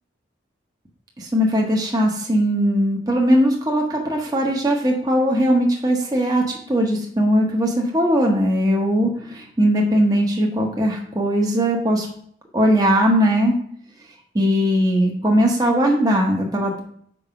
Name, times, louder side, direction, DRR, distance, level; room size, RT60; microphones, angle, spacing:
voice 1, 1.2-12.1 12.5-13.6 14.3-16.8, equal, 20° right, 0 dB, 0.9 m, -19 dB
5.3 x 4.8 x 5.6 m, 0.64 s
head